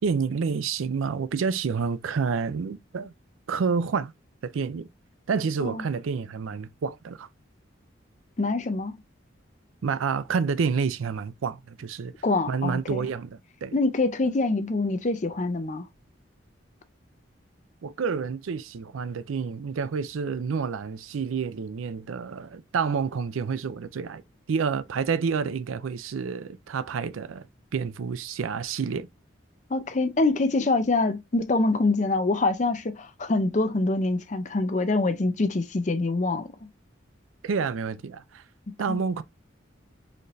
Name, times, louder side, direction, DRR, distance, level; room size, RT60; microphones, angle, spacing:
voice 1, 0.0-3.1 3.5-4.1 4.4-4.9 5.3-7.3 9.8-12.1 12.5-13.8 17.8-24.2 24.5-27.5 27.7-29.1 37.4-38.4 38.8-39.2, right 5 dB, 90° right, 0.4 m, -29 dB
voice 2, 8.4-9.0 12.2-13.0 13.7-15.9 29.7-36.5 38.9-39.0, left 3 dB, 35° left, 0.5 m, -25 dB
4.2 x 2.6 x 3.1 m
head